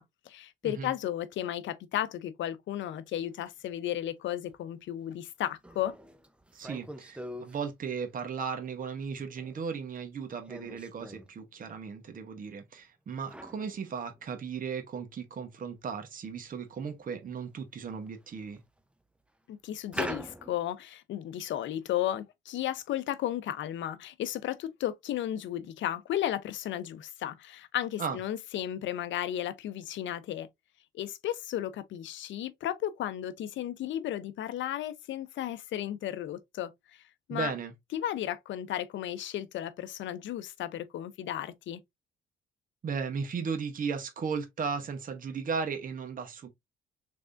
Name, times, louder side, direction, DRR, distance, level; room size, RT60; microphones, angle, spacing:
voice 1, 0.0-5.9 19.5-30.5 30.9-37.0 37.3-37.5 37.9-41.8, left 12 dB, 70° left, 0.6 m, -34 dB
sound 1, 3.2-3.3 4.5-4.6 5.0-5.1 5.6-7.6 9.0-9.7 10.4-11.3 13.3-14.7 15.0-15.1 16.5-16.6 17.2-17.4 17.9-18.8 19.9-20.6, equal, 5° right, 0.5 m, -42 dB
voice 2, 6.5-18.6 28.0-28.2 37.3-37.7 42.8-46.5, right 5 dB, 45° right, 0.9 m, -36 dB
3.4 x 3.3 x 2.5 m
cardioid pair, 90°, 20 cm